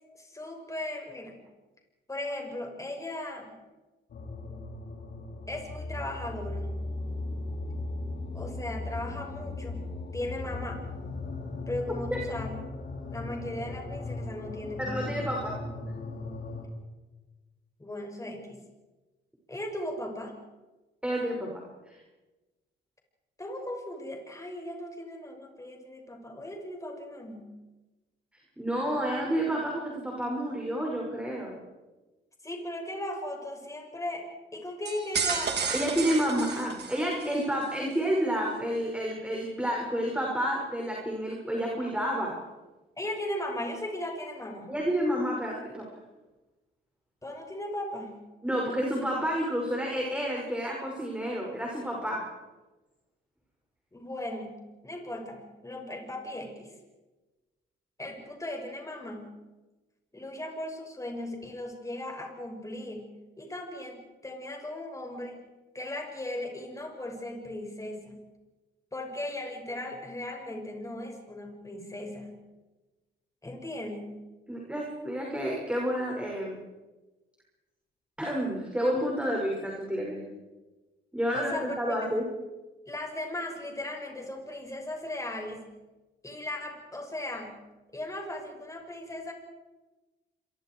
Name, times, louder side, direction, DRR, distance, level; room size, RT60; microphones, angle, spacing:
voice 1, 0.2-1.4 2.1-3.5 5.5-6.8 8.3-9.8 10.1-10.9 11.7-12.6 13.1-15.1 17.8-18.6 19.5-20.4 23.4-27.5 32.4-35.6 43.0-44.7 47.2-48.2 53.9-56.8 58.0-59.3 60.1-65.4 65.7-68.2 68.9-72.4 73.4-74.2 81.3-82.0 82.9-85.7 86.2-87.6 87.9-89.3, left 1 dB, 15° left, 2 dB, 6.2 m, -37 dB
sound 1, 4.1-16.7, left 2 dB, 55° left, 5.5 m, -37 dB
voice 2, 14.8-15.6 21.0-22.0 28.6-31.5 35.7-42.3 44.7-45.9 48.4-52.2 74.5-76.6 78.2-80.3 81.1-82.3, equal, 5° right, -2 dB, 6.0 m, -30 dB
sound 2, 34.9-37.4, right 6 dB, 55° right, 3.2 m, -32 dB
27.5 x 23.5 x 4.8 m, 1.1 s
cardioid pair, 90°, 20 cm